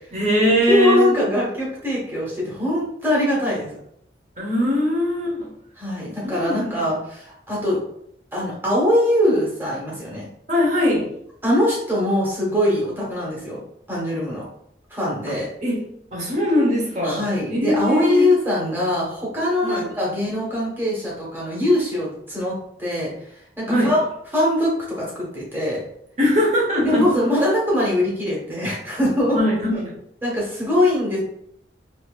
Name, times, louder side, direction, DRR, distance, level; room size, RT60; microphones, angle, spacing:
voice 1, 0.1-1.1 4.4-5.5 6.2-6.8 10.5-11.1 15.6-15.8 16.1-17.2 17.5-18.3 19.6-19.8 23.7-23.9 26.2-27.1 29.3-29.9, equal, 40° right, -3 dB, 1.1 m, -21 dB
voice 2, 0.7-3.7 5.8-7.8 8.3-10.3 11.4-13.6 13.9-14.4 14.9-15.5 17.0-22.5 22.8-23.1 23.6-24.0 24.3-25.8 26.8-29.4 30.2-31.2, left 1 dB, 10° right, -5 dB, 1.2 m, -22 dB
4.2 x 2.8 x 2.4 m, 0.73 s
head